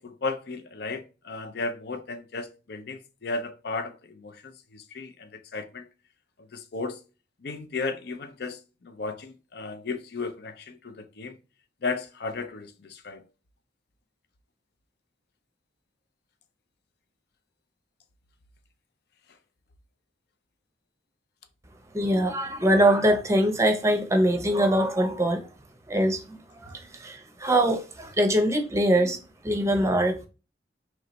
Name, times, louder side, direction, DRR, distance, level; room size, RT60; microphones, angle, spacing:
voice 1, 0.0-5.9 6.5-7.0 7.4-11.4 11.8-13.2, left 3 dB, 60° left, 0.5 m, -35 dB
voice 2, 21.9-25.5 25.9-29.2 29.4-30.3, right 1 dB, 15° right, 0.6 m, -23 dB
3.2 x 3.1 x 3.9 m
head